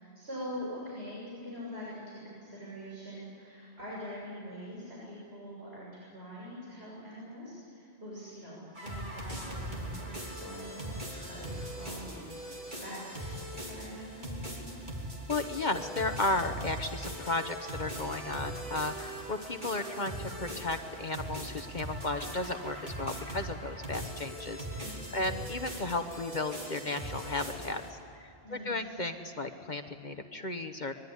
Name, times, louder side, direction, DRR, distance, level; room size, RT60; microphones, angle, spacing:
voice 1, 0.0-14.7 24.8-25.4 28.4-29.0, equal, 75° right, -6 dB, 7.1 m, -44 dB
sound 1, 8.7-27.9, right 1 dB, 45° right, 3.5 m, -40 dB
voice 2, 15.3-28.0 28.5-30.9, left 2 dB, 45° left, 7 dB, 1.2 m, -34 dB
25.0 x 21.5 x 9.9 m, 2.7 s
omnidirectional pair, 1.1 m